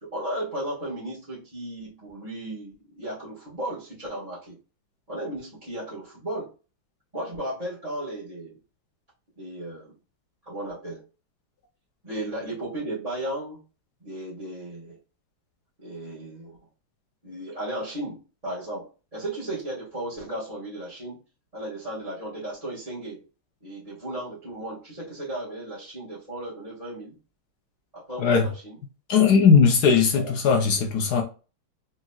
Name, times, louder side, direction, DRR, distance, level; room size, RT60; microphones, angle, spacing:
voice 1, 0.0-4.6 5.1-6.5 7.1-8.6 9.4-10.0 10.5-11.0 12.0-13.6 14.0-15.0 15.8-16.6 17.2-21.2 21.5-23.2 23.6-27.2 27.9-28.8 30.1-30.3, right 1 dB, 20° right, 1.6 m, -35 dB
voice 2, 29.1-31.2, left 6 dB, 70° left, 1.1 m, -18 dB
4.0 x 3.7 x 2.3 m
omnidirectional pair, 2.1 m